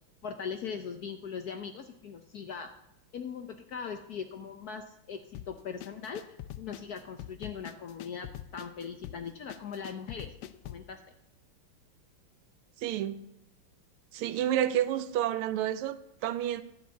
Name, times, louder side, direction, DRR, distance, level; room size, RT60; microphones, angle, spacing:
voice 1, 0.2-2.7 3.1-10.3 10.6-11.0, left 6 dB, 65° left, 6 dB, 1.0 m, -40 dB
sound 1, 5.3-10.9, left 12 dB, 90° left, 1.6 m, -44 dB
voice 2, 12.8-13.2 14.1-16.6, right 11 dB, 85° right, 12 dB, 1.5 m, -30 dB
12.0 x 5.1 x 8.2 m, 0.86 s
omnidirectional pair, 2.4 m